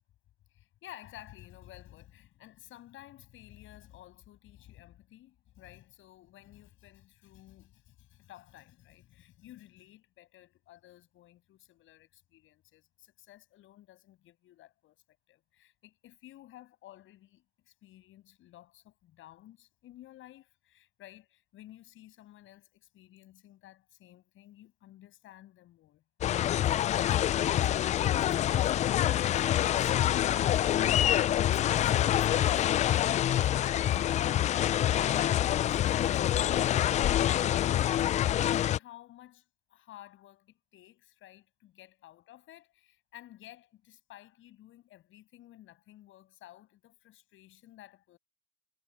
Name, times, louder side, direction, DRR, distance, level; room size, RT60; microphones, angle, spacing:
voice 1, 0.5-32.7 33.0-36.9 37.2-48.2, left 14 dB, 40° left, 7.1 m, -53 dB
sound 1, 26.2-38.8, left 12 dB, 25° left, 0.5 m, -26 dB
hypercardioid pair, 110°, 31 cm